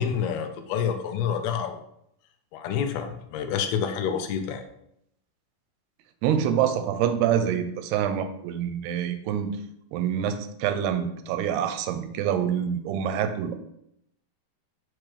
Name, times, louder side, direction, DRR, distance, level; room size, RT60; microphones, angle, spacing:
voice 1, 0.0-1.8 2.5-4.6, left 7 dB, 85° left, 6 dB, 2.6 m, -28 dB
voice 2, 6.2-9.5 9.9-13.5, right 9 dB, 90° right, 9 dB, 2.7 m, -26 dB
6.3 x 6.1 x 3.3 m, 0.75 s
omnidirectional pair, 4.6 m